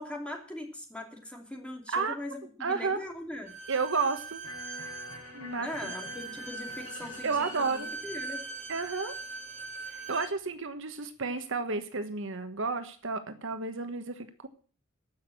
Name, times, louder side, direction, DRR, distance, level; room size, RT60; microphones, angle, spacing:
voice 1, 0.0-3.5 5.6-7.3 7.6-8.4, left 1 dB, 5° left, 2 dB, 2.9 m, -40 dB
voice 2, 2.6-3.0 3.7-4.4 5.3-5.9 7.2-7.9 8.7-9.1 9.9-14.5, right 4 dB, 65° right, 9 dB, 1.3 m, -32 dB
Bowed string instrument, 3.4-10.3, right 3 dB, 35° right, 4.3 m, -41 dB
Electric guitar, 4.4-10.5, left 3 dB, 85° left, 7.3 m, -49 dB
14.5 x 6.4 x 8.5 m, 0.42 s
head